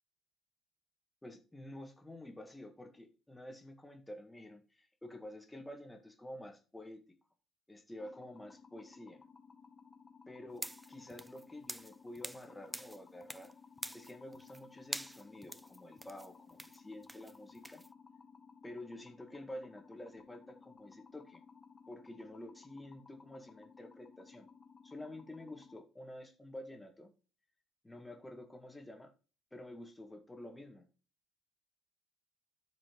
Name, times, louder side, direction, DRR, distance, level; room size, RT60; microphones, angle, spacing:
voice 1, 1.2-7.0 7.7-9.2 10.3-13.5 13.9-17.8 18.6-21.4 21.9-24.5 24.8-27.1 27.8-29.1 29.5-30.8, left 1 dB, 10° left, 4 dB, 1.8 m, -49 dB
sound 1, 8.0-25.8, left 5 dB, 30° left, 0.9 m, -59 dB
sound 2, 10.5-12.5 12.7-13.5 13.8-14.6 14.9-17.9, right 1 dB, 5° right, 0.4 m, -45 dB
13.0 x 5.0 x 3.1 m, 0.35 s
figure-of-eight pair, 50°, 0 cm